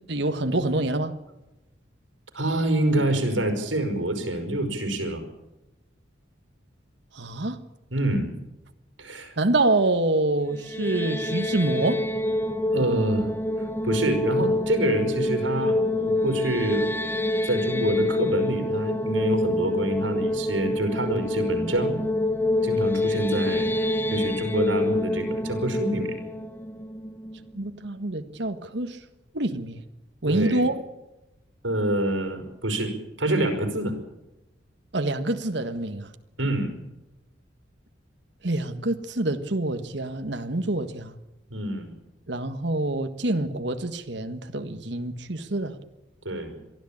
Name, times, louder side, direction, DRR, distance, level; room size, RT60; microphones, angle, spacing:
voice 1, 0.1-1.1 7.1-7.6 9.4-12.1 27.5-29.0 29.3-29.8 30.2-30.8 34.9-36.1 38.4-41.2 42.3-45.8, right 2 dB, 65° right, 1.6 m, -26 dB
voice 2, 2.3-5.2 7.9-8.3 9.0-9.4 12.7-13.3 13.6-16.9 17.4-22.0 22.6-26.2 30.2-30.6 31.6-34.0 36.4-36.8 41.5-41.9 46.2-46.6, right 1 dB, 80° right, 5.0 m, -26 dB
sound 1, 10.5-27.6, left 1 dB, 10° left, 0.8 m, -27 dB
23.0 x 13.5 x 8.7 m
head